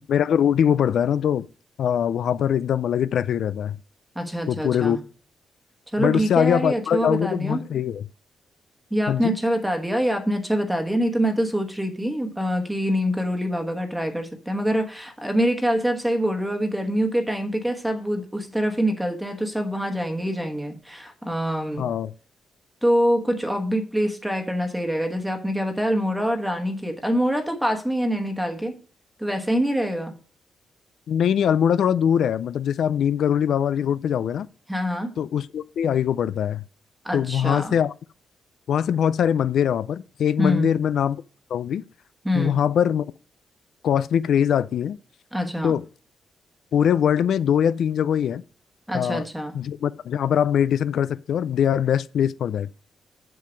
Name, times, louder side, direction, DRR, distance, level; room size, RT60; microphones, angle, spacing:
voice 1, 0.1-1.5 1.8-3.8 4.5-5.0 6.0-8.0 9.1-9.3 21.8-22.1 31.1-34.5 35.2-36.6 37.1-37.9 38.7-41.2 41.5-41.8 42.3-43.0 43.8-45.0 45.6-45.8 46.7-48.4 48.9-49.3 49.5-52.7, left 9 dB, 65° left, 0.4 m, -22 dB
voice 2, 4.1-5.0 5.9-7.6 8.9-21.9 22.8-28.8 29.2-30.1 34.7-35.1 37.0-37.8 40.4-40.7 42.2-42.6 45.3-45.7 48.9-49.5, equal, 5° right, 1.2 m, -25 dB
7.6 x 7.6 x 5.1 m
wide cardioid pair, 160°, 0 cm